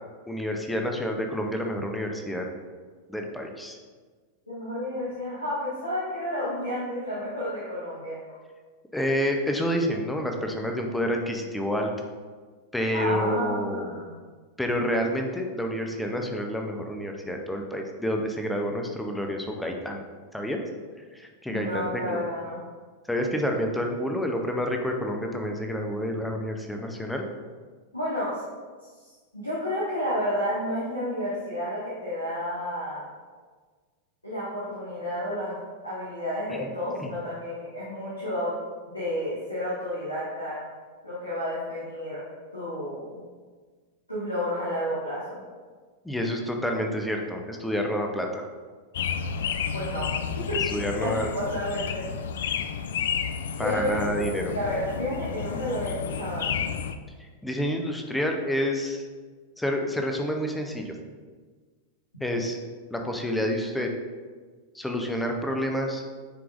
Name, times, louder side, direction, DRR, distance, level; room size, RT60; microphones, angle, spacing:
voice 1, 0.3-2.5 3.1-3.8 8.9-11.9 12.7-13.8 14.6-20.0 20.3-20.6 21.1-22.2 23.1-27.3 36.5-36.7 37.0-37.1 46.0-48.4 50.7-51.3 53.6-54.5 57.4-59.1 59.6-61.0 62.2-62.6 62.9-63.9 64.7-66.1, equal, 5° left, 2 dB, 0.8 m, -28 dB
voice 2, 4.5-8.3 12.9-14.1 21.5-22.6 27.9-28.4 29.0-33.0 34.2-35.6 35.8-38.5 38.9-40.6 41.0-42.3 42.5-43.2 44.1-45.4 49.7-50.1 50.5-52.0 53.6-56.7, equal, 85° left, -10 dB, 1.7 m, -31 dB
sound 1, 48.9-56.9, left 7 dB, 60° left, 0.3 m, -31 dB
9.3 x 4.7 x 2.6 m, 1.5 s
figure-of-eight pair, 90°, 0 cm